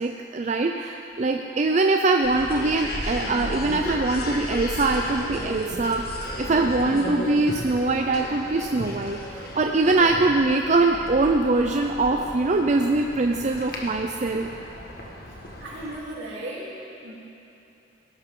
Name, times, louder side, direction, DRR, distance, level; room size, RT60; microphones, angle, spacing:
voice 1, 0.0-6.0 6.4-14.5, right 3 dB, 40° right, 3 dB, 0.5 m, -23 dB
sound 1, 2.2-16.0, left 1 dB, 55° left, 1.6 m, -35 dB
voice 2, 15.6-17.1, right 1 dB, 75° right, -6 dB, 3.4 m, -36 dB
18.5 x 11.5 x 3.8 m, 2.9 s
head